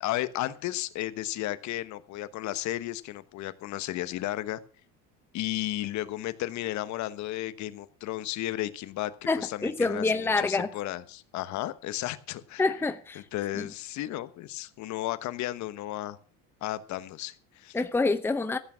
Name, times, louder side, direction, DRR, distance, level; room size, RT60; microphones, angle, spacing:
voice 1, 0.0-4.6 5.3-9.1 9.4-12.7 13.3-16.2 16.6-17.8, left 15 dB, 55° left, 1.2 m, -33 dB
voice 2, 9.3-10.7 12.6-13.2 13.5-13.7 17.7-18.6, left 3 dB, 5° left, 0.8 m, -27 dB
15.0 x 8.7 x 6.2 m
cardioid pair, 125°, 33 cm